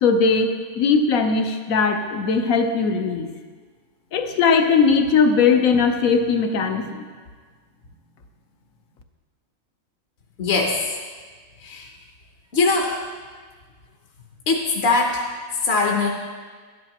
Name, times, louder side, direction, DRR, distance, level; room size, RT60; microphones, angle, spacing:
voice 1, 0.0-3.3 4.1-7.1, left 5 dB, 75° left, 5 dB, 1.2 m, -19 dB
voice 2, 10.4-10.8 11.6-11.9 12.5-13.0 14.5-15.2 15.6-16.1, left 3 dB, 55° left, 0 dB, 1.0 m, -21 dB
12.0 x 10.5 x 2.9 m, 1.5 s
omnidirectional pair, 1.5 m